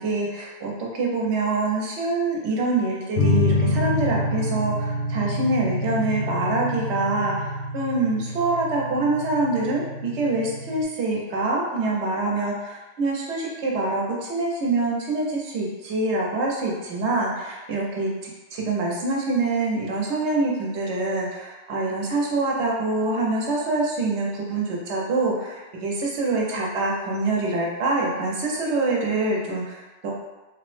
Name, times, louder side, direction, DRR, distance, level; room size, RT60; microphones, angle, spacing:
voice 1, 0.0-18.1 18.5-30.1, right 2 dB, 70° right, -2 dB, 1.0 m, -25 dB
sound 1, 3.2-10.8, left 1 dB, 75° left, 0.8 m, -27 dB
3.1 x 2.0 x 3.1 m, 1.1 s
omnidirectional pair, 1.2 m